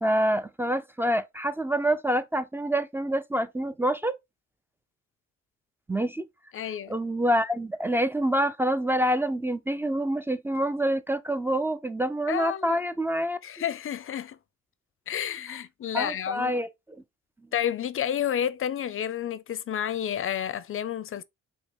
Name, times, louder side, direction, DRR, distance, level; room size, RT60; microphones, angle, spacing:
voice 1, 0.0-4.1 5.9-6.3 6.9-13.4 15.9-16.7, right 1 dB, 10° right, 0.4 m, -26 dB
voice 2, 6.5-7.0 12.3-12.8 13.4-14.4 15.1-16.5 17.5-21.2, left 10 dB, 45° left, 0.5 m, -30 dB
5.1 x 2.0 x 4.2 m
cardioid pair, 90°, 30 cm